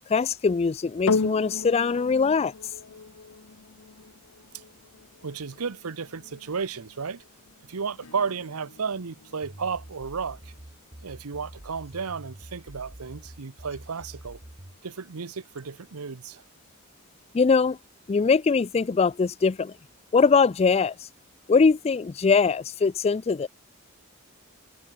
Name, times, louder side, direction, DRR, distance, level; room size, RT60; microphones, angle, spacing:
voice 1, 0.1-2.5 17.3-17.8 18.1-19.7 20.1-20.9 21.5-23.5, left 5 dB, 30° left, 0.4 m, -22 dB
sound 1, 1.1-9.6 10.3-10.4, left 4 dB, 70° left, 0.8 m, -35 dB
voice 2, 5.2-7.2 7.7-10.5 11.0-14.4 14.8-16.4, right 5 dB, 90° right, 0.8 m, -33 dB
Acoustic guitar / Strum, 8.0-13.2, left 2 dB, 90° left, 2.9 m, -58 dB
sound 2, 9.4-14.8, right 1 dB, 30° right, 1.6 m, -46 dB
head